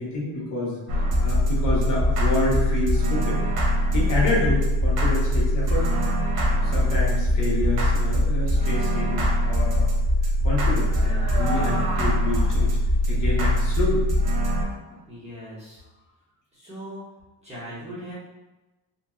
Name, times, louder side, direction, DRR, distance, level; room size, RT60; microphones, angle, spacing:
voice 1, 0.0-3.4 3.9-5.9 6.4-9.9 10.4-12.7 13.1-14.0 14.9-15.0, left 2 dB, 55° left, -5 dB, 1.0 m, -28 dB
sound 1, 0.9-14.7, equal, 80° right, 0.8 m, -22 dB
voice 2, 15.1-15.8 16.5-17.0 17.4-18.1, equal, 20° right, -10 dB, 1.1 m, -39 dB
2.8 x 2.8 x 2.3 m, 1.1 s
cardioid pair, 145°, 36 cm